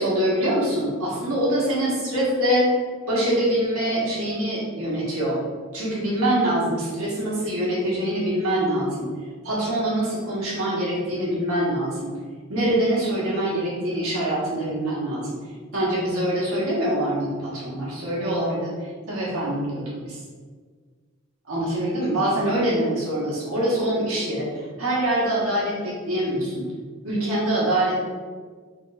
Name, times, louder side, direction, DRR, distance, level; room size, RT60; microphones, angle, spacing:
voice 1, 0.0-2.7 3.1-5.4 5.7-9.1 9.4-12.1 12.5-15.3 15.7-18.7 19.1-20.2 21.5-26.7 27.0-28.0, right 1 dB, 85° right, -6 dB, 1.4 m, -24 dB
4.1 x 3.5 x 2.5 m, 1.5 s
head